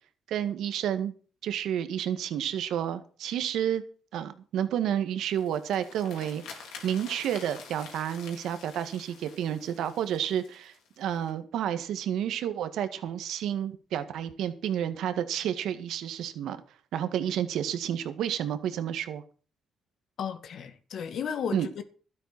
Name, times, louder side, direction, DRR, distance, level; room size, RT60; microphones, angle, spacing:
voice 1, 0.3-1.1 1.4-3.8 4.1-6.4 6.8-16.6 16.9-19.2 21.5-21.7, right 10 dB, 80° right, 1.7 m, -30 dB
sound 1, 5.2-11.3, left 5 dB, 85° left, 4.2 m, -48 dB
voice 2, 20.2-21.8, left 7 dB, 65° left, 1.9 m, -34 dB
12.5 x 9.3 x 6.1 m
cardioid pair, 90°, 0 cm